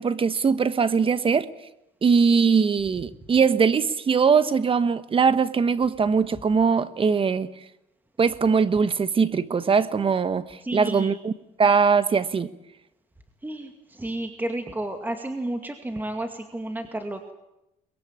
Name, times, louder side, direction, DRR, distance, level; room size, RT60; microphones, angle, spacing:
voice 1, 0.0-1.5 2.0-7.5 8.2-11.3 11.6-12.5, right 5 dB, 30° right, 1.2 m, -21 dB
voice 2, 10.6-11.1 13.4-17.3, right 1 dB, 10° right, 2.2 m, -32 dB
23.0 x 22.0 x 8.8 m
cardioid pair, 110°, 17 cm